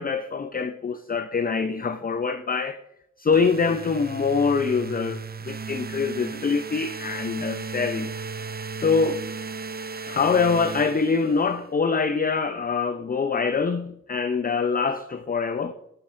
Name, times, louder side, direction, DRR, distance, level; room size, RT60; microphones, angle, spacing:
voice 1, 0.0-2.8 3.2-8.1 8.7-9.3 9.9-15.7, left 5 dB, 30° left, 0.5 m, -24 dB
sound 1, 3.3-11.6, right 4 dB, 30° right, 0.5 m, -36 dB
13.0 x 5.4 x 3.7 m
cardioid pair, 45°, 30 cm